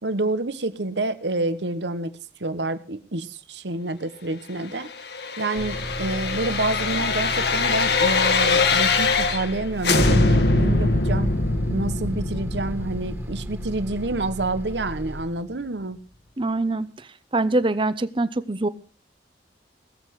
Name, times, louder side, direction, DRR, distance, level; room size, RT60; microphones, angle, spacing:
voice 1, 0.0-4.9 5.4-11.3 11.7-16.0, right 2 dB, 80° right, 13 dB, 1.2 m, -28 dB
sound 1, 4.8-9.6 9.8-14.7 15.1-15.2, left 3 dB, 65° left, 1.6 m, -23 dB
Bus, 5.6-15.2, right 1 dB, 15° right, 1.8 m, -35 dB
voice 2, 16.4-17.1 17.3-18.7, right 2 dB, 30° right, 15 dB, 0.8 m, -24 dB
18.5 x 7.9 x 6.5 m, 0.39 s
head